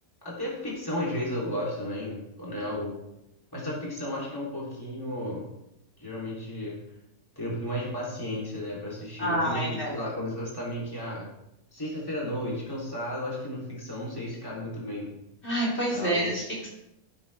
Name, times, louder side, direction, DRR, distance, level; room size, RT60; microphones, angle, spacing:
voice 1, 0.2-2.9 3.5-5.4 6.0-6.8 7.4-11.3 11.7-15.1 15.9-16.3, left 1 dB, 15° left, -6 dB, 3.6 m, -33 dB
voice 2, 9.2-9.9 15.4-16.7, equal, 45° left, -5 dB, 3.5 m, -28 dB
15.5 x 8.2 x 3.5 m, 0.87 s
omnidirectional pair, 1.6 m